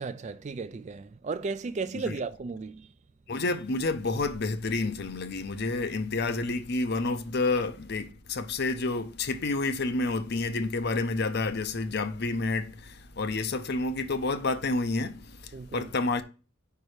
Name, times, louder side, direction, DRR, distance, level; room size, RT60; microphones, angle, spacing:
voice 1, 0.0-2.9 15.5-15.9, right 4 dB, 35° right, 0.3 m, -35 dB
voice 2, 3.3-16.2, left 3 dB, 50° left, 0.6 m, -29 dB
5.3 x 4.6 x 4.9 m
head